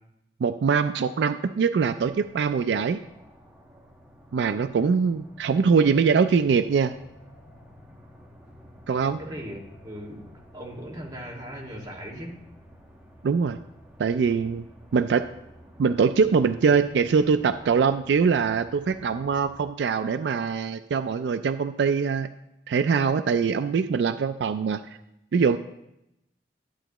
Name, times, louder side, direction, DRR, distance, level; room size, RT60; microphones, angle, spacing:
voice 1, 0.4-3.0 4.3-6.9 8.9-9.2 13.2-13.6 14.0-14.7 14.9-15.3 15.8-22.3 22.7-24.8 25.3-25.6, right 5 dB, 80° right, 11 dB, 0.3 m, -23 dB
sound 1, 2.0-19.6, equal, 5° right, 1.4 m, -51 dB
voice 2, 9.2-10.3 10.5-12.3, equal, 20° right, -3 dB, 1.9 m, -38 dB
11.5 x 8.8 x 3.0 m, 0.85 s
head